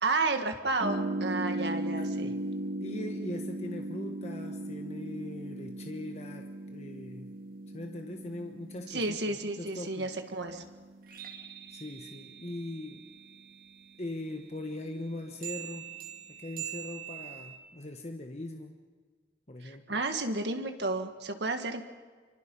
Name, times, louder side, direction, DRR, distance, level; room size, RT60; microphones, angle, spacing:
voice 1, 0.0-2.3 8.9-10.6 19.6-21.8, right 3 dB, 80° right, 6 dB, 1.9 m, -32 dB
sound 1, 0.8-13.8 15.4-17.6, right 2 dB, 50° right, 2.2 m, -38 dB
voice 2, 1.9-2.4 2.8-7.3 7.7-10.1 11.7-13.1 14.0-15.9 16.3-18.7 19.5-20.0, left 1 dB, 40° left, 4 dB, 1.2 m, -41 dB
28.0 x 24.5 x 5.5 m, 1.5 s
head